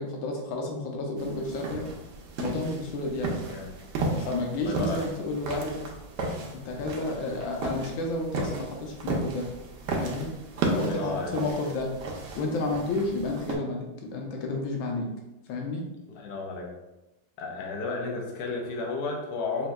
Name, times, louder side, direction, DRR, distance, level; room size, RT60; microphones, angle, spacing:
voice 1, 0.0-1.9 2.4-3.3 4.0-5.8 6.5-9.5 10.0-10.3 10.7-11.9 12.3-15.1 15.5-15.8, left 2 dB, 90° left, 1 dB, 1.5 m, -31 dB
sound 1, 1.2-13.6, right 2 dB, 70° right, 1.2 m, -34 dB
voice 2, 4.6-5.1 10.7-11.4 16.1-16.7 17.4-19.7, left 3 dB, 65° left, -1 dB, 1.3 m, -33 dB
5.3 x 2.8 x 2.2 m, 0.99 s
omnidirectional pair, 2.1 m